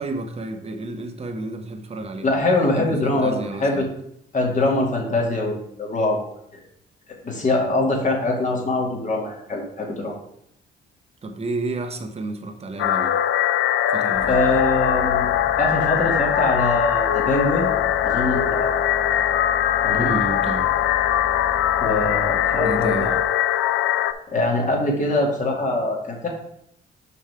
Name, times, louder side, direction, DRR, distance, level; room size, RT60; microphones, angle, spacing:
voice 1, 0.0-2.3 2.8-3.9 11.2-13.2 13.9-14.5 20.0-20.7 22.6-23.1, right 2 dB, 30° right, 6 dB, 1.0 m, -30 dB
voice 2, 2.2-3.9 4.3-6.3 7.2-10.2 14.3-15.3 15.6-17.7 18.0-18.7 19.8-20.2 21.8-23.2 24.3-26.3, left 2 dB, 40° left, -1 dB, 2.2 m, -23 dB
sound 1, 12.8-24.1, left 11 dB, 80° left, 0.5 m, -21 dB
sound 2, 14.1-23.2, equal, 10° left, 1.0 m, -37 dB
5.7 x 5.3 x 4.9 m, 0.73 s
cardioid pair, 90°, 20 cm